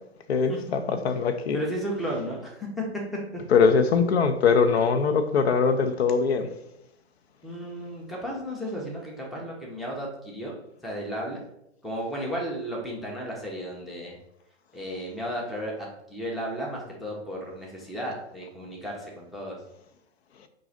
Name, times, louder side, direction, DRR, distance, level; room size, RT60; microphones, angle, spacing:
voice 1, 0.3-1.6 3.5-6.5, left 5 dB, 65° left, 0.5 m, -22 dB
voice 2, 1.5-2.8 3.3-3.4 7.4-10.5 10.8-11.4 11.8-14.2 14.7-19.6, equal, ahead, 0.5 m, -34 dB
4.7 x 2.5 x 3.8 m
figure-of-eight pair, 105°, 35 cm